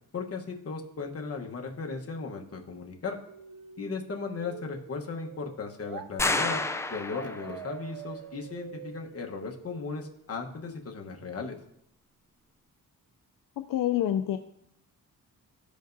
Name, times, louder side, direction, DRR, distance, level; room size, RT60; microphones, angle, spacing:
voice 1, 0.1-3.2 3.8-6.6 6.9-11.6, left 4 dB, 45° left, 2 dB, 1.1 m, -36 dB
sound 1, 3.3-6.1 7.1-10.1, right 9 dB, 80° right, 0.5 m, -46 dB
sound 2, 6.2-7.7, left 2 dB, 10° left, 0.3 m, -29 dB
voice 2, 13.6-14.4, left 11 dB, 75° left, 7 dB, 0.5 m, -27 dB
14.0 x 5.1 x 2.6 m, 0.77 s
cardioid pair, 100°, 34 cm